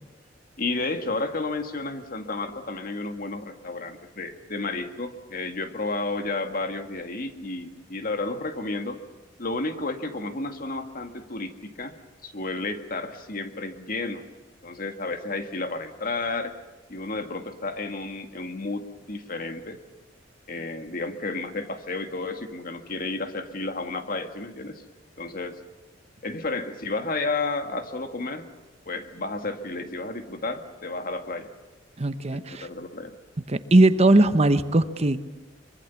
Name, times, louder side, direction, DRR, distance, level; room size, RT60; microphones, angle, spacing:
voice 1, 0.6-9.0 9.4-12.0 12.2-14.2 14.6-16.6 16.9-19.8 20.5-24.8 25.2-25.6 26.2-28.5 28.9-31.5 32.3-33.2, left 3 dB, 50° left, 6 dB, 2.0 m, -32 dB
voice 2, 32.0-32.7 33.5-35.2, right 2 dB, 35° right, 11 dB, 0.9 m, -19 dB
24.5 x 23.5 x 7.1 m, 1.2 s
head